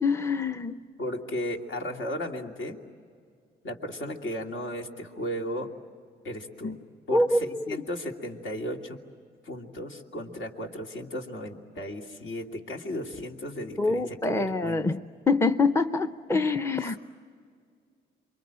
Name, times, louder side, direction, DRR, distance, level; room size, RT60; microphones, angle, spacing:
voice 1, 0.0-0.8 6.6-6.8 7.1-7.8 13.8-15.0 15.3-17.0, left 3 dB, 15° left, 10 dB, 0.7 m, -25 dB
voice 2, 1.0-2.8 3.6-5.7 6.2-6.8 7.1-9.0 9.4-14.9 16.8-17.0, equal, 70° left, 2 dB, 2.7 m, -35 dB
28.0 x 23.5 x 8.8 m, 2.2 s
cardioid pair, 90°, 20 cm